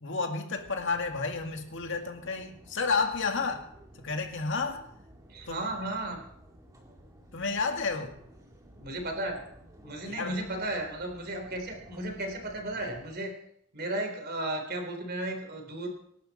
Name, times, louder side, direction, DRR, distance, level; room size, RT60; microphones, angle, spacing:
voice 1, 0.0-3.7 4.0-4.9 5.5-5.6 7.3-8.2 10.1-10.4, left 4 dB, 55° left, 4 dB, 2.1 m, -31 dB
sound 1, 0.5-13.2, equal, 15° right, 2.3 m, -54 dB
voice 2, 5.3-6.2 8.8-9.4 9.8-13.3 13.7-15.9, right 1 dB, 45° right, 3 dB, 3.7 m, -34 dB
25.5 x 11.5 x 4.2 m, 0.70 s
head